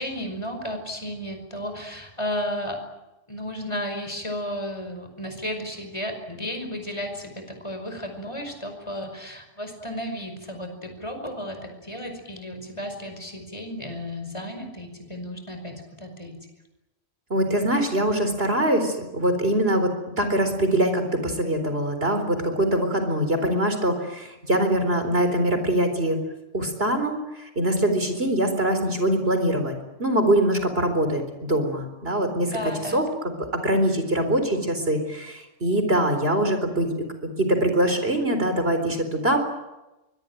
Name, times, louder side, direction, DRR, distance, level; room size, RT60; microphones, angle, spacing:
voice 1, 0.0-2.8 3.3-16.5 32.5-33.1, equal, 25° left, 5 dB, 5.4 m, -33 dB
voice 2, 17.3-26.2 26.5-32.6 32.9-36.9 37.4-39.5, right 1 dB, 55° right, 7 dB, 4.4 m, -23 dB
25.0 x 22.0 x 9.2 m, 0.99 s
omnidirectional pair, 1.2 m